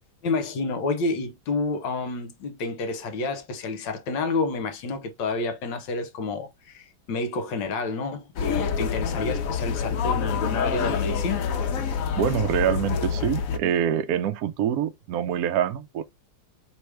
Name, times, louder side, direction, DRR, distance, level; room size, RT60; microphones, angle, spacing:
voice 1, 0.2-11.5, left 3 dB, 65° left, 1.3 m, -29 dB
sound 1, 8.4-13.6, left 6 dB, 85° left, 0.7 m, -27 dB
voice 2, 12.2-16.0, right 9 dB, 80° right, 0.8 m, -25 dB
3.4 x 3.3 x 4.6 m
omnidirectional pair, 2.3 m